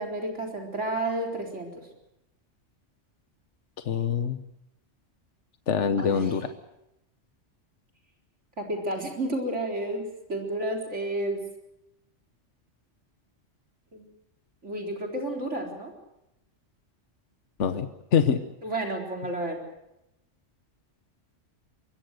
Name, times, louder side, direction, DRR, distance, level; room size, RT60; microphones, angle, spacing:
voice 1, 0.0-1.8 6.0-6.4 8.6-11.4 13.9-14.1 14.6-15.9 18.6-19.6, right 1 dB, 75° right, 1 dB, 4.3 m, -31 dB
voice 2, 3.8-4.4 5.7-6.5 17.6-18.4, left 7 dB, 75° left, 9 dB, 1.3 m, -24 dB
24.5 x 21.5 x 6.5 m, 0.85 s
omnidirectional pair, 1.2 m